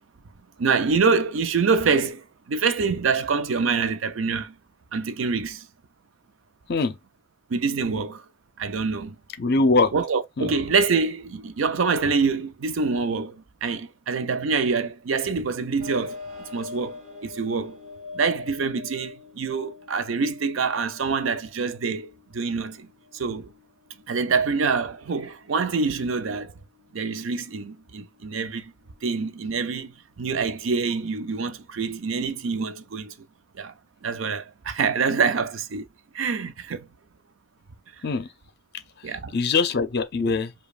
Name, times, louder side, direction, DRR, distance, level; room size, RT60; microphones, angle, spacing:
voice 1, 0.6-4.6 4.9-5.7 7.5-8.2 8.6-9.2 9.9-16.2 16.5-17.8 18.1-22.9 23.1-23.5 24.1-26.5 26.9-28.7 29.0-33.1 33.5-33.7 34.0-35.8 36.1-36.9 39.0-39.3, right 5 dB, 80° right, 0.5 m, -26 dB
voice 2, 9.4-9.9 10.4-10.5 38.0-38.3 39.1-40.5, left 3 dB, 55° left, 0.5 m, -22 dB
sound 1, 15.8-31.2, left 4 dB, 35° right, 1.3 m, -45 dB
5.1 x 2.3 x 2.4 m
head